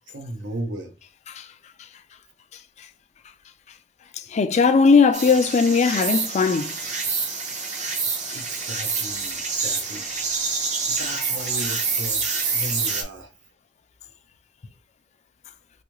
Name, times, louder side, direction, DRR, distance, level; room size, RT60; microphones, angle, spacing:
voice 1, 0.1-0.9 8.3-10.0 10.8-13.3, right 1 dB, 75° right, 0.7 m, -35 dB
voice 2, 4.3-6.7, left 5 dB, 35° left, 0.3 m, -18 dB
sound 1, 5.1-13.0, right 4 dB, 40° right, 0.6 m, -27 dB
3.5 x 2.4 x 3.0 m
head